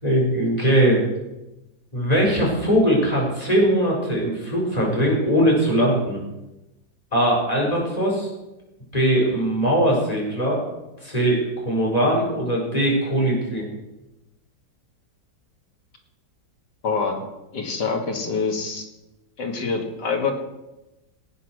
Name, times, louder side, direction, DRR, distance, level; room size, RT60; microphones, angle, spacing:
voice 1, 0.0-1.0 1.9-6.2 7.1-8.3 8.9-10.6 11.0-13.6, right 1 dB, 20° left, -3 dB, 4.7 m, -20 dB
voice 2, 16.8-17.2 17.5-18.9 19.4-20.3, left 5 dB, 75° left, 2 dB, 2.7 m, -25 dB
18.0 x 8.4 x 6.2 m, 0.98 s
omnidirectional pair, 1.8 m